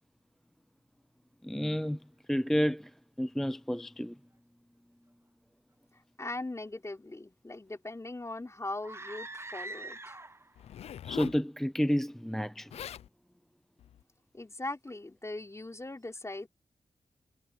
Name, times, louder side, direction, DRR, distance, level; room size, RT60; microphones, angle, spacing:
voice 1, 1.4-4.2 11.0-12.8, equal, 5° left, 0.5 m, -31 dB
voice 2, 6.2-10.2 14.3-16.5, left 2 dB, 30° left, 4.3 m, -40 dB
sound 1, 8.8-10.6, right 2 dB, 25° right, 1.2 m, -43 dB
Zipper (clothing), 10.6-11.4 12.4-12.5 12.7-13.1 13.8-14.0, left 10 dB, 85° left, 0.5 m, -42 dB
supercardioid pair, 40°, 10 cm